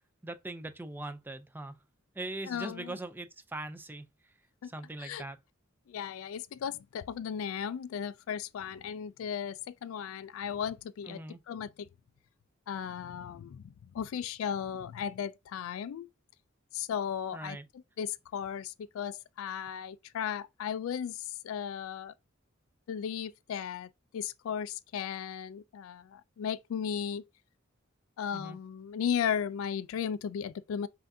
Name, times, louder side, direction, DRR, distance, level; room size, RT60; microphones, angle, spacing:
voice 1, 0.2-1.7 2.2-4.0 4.6-5.4 11.1-11.4 17.3-17.7 28.3-28.6, right 2 dB, 10° right, 0.4 m, -41 dB
voice 2, 2.5-3.0 4.6-4.7 5.0-5.2 5.9-11.9 12.7-16.1 16.7-22.1 22.9-27.2 28.2-30.9, left 8 dB, 80° left, 0.3 m, -36 dB
5.5 x 2.6 x 2.6 m
head